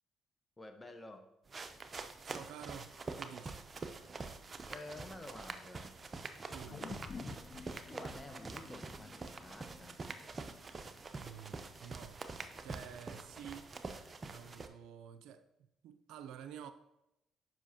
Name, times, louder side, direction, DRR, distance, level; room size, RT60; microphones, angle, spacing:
voice 1, 0.6-1.3 4.7-5.9 7.9-10.0, left 2 dB, 20° left, 1.0 m, -50 dB
sound 1, 1.5-14.7, right 3 dB, 35° right, 0.6 m, -46 dB
voice 2, 2.2-3.6 6.5-6.9 11.2-12.2 12.6-13.7 14.2-15.5 15.8-16.7, right 9 dB, 80° right, 0.4 m, -50 dB
sound 2, 6.7-11.2 11.6-11.7, left 5 dB, 45° left, 0.3 m, -51 dB
7.4 x 5.6 x 2.8 m
supercardioid pair, 65°, 0 cm